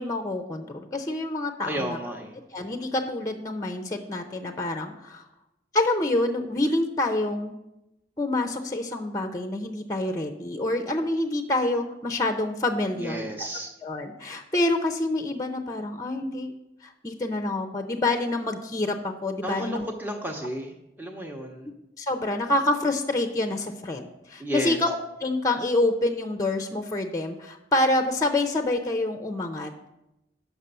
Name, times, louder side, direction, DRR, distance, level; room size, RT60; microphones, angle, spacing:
voice 1, 0.0-2.0 2.5-5.3 5.7-7.6 8.2-13.5 13.8-16.5 16.8-19.8 22.0-29.9, left 2 dB, 20° left, 6 dB, 0.6 m, -27 dB
voice 2, 1.6-2.3 13.0-13.7 19.4-21.7 24.4-24.8, equal, 10° right, 0 dB, 0.8 m, -32 dB
8.8 x 6.0 x 6.8 m, 0.91 s
head